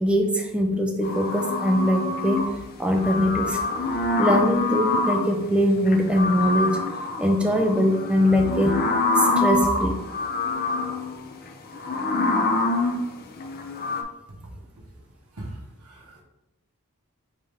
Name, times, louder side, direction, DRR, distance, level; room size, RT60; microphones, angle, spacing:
voice 1, 0.0-2.5 2.8-3.7 4.2-6.9 7.2-8.8 9.2-10.0, equal, 5° right, 2 dB, 0.5 m, -22 dB
sound 1, 1.0-2.6 2.9-5.4 5.9-14.0, left 3 dB, 45° left, 0.5 m, -25 dB
voice 2, 14.3-15.1 15.3-16.2, right 1 dB, 85° right, -1 dB, 1.1 m, -42 dB
3.9 x 3.8 x 3.5 m, 0.93 s
head